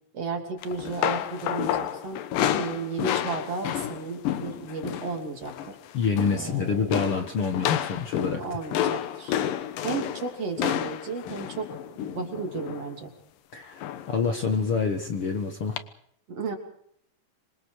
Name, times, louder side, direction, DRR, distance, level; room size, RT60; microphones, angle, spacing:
voice 1, 0.1-2.2 2.5-5.8 6.3-6.9 8.4-9.4 9.8-11.7 12.0-13.1 16.3-16.6, right 4 dB, 45° right, 4 dB, 3.9 m, -33 dB
sound 1, 0.6-5.2 5.4-5.8 6.0-6.5 6.9-12.9 13.8-14.2 14.5-14.7 15.8-15.9, left 11 dB, 85° left, 2.9 m, -30 dB
voice 2, 5.9-8.4 13.5-13.8 14.1-15.8, left 5 dB, 50° left, 5 dB, 2.0 m, -26 dB
26.5 x 25.0 x 4.8 m, 0.68 s
omnidirectional pair, 3.9 m